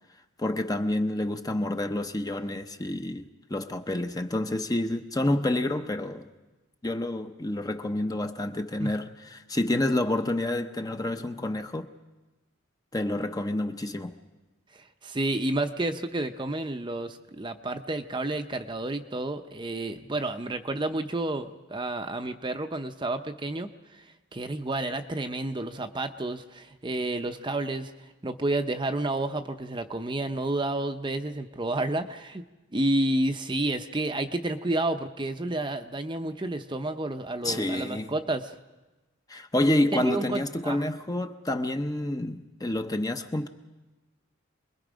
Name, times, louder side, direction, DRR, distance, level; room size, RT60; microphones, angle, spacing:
voice 1, 0.4-6.3 6.8-11.9 12.9-14.2 37.4-38.1 39.3-43.5, left 1 dB, 20° left, 0.7 m, -28 dB
voice 2, 14.7-23.7 23.9-24.0 24.3-27.9 28.2-32.4 32.7-38.5 39.9-40.8, right 2 dB, 20° right, 0.7 m, -30 dB
27.5 x 21.0 x 5.1 m
head